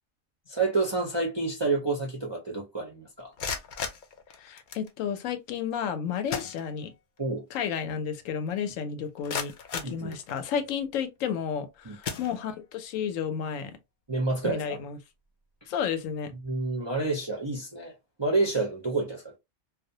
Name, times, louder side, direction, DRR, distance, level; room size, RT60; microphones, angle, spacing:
voice 1, 0.5-3.3 7.2-7.4 9.8-10.2 11.9-12.0 14.1-14.8 16.4-19.4, right 3 dB, 45° right, 0.3 m, -29 dB
sound 1, 3.2-4.9 5.9-6.0 6.3-7.2 7.5-7.6 8.2-8.3 8.8-10.7 11.3-11.6 12.0-12.8, left 6 dB, 70° left, 0.4 m, -37 dB
voice 2, 4.4-6.9 7.5-9.5 9.9-13.8 14.4-15.0 15.7-16.3, left 7 dB, 90° left, 1.0 m, -32 dB
2.4 x 2.1 x 2.6 m
omnidirectional pair, 1.3 m